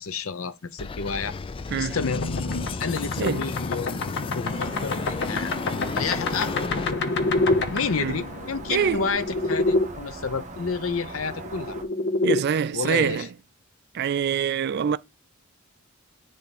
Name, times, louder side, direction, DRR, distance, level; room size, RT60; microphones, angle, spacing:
voice 1, 0.0-1.3 1.8-2.2 2.8-4.0 4.3-5.6 5.9-7.0 7.7-11.8 12.7-13.3, left 5 dB, 85° left, 0.7 m, -30 dB
sound 1, 0.8-6.9, left 4 dB, 25° left, 0.3 m, -33 dB
sound 2, 2.0-9.9 11.2-12.4, left 2 dB, 55° left, 1.1 m, -27 dB
sound 3, 4.4-11.8, right 3 dB, 35° right, 1.2 m, -40 dB
voice 2, 8.7-9.1 12.2-13.3 13.9-15.0, right 7 dB, 50° right, 0.4 m, -25 dB
10.0 x 3.5 x 4.2 m
head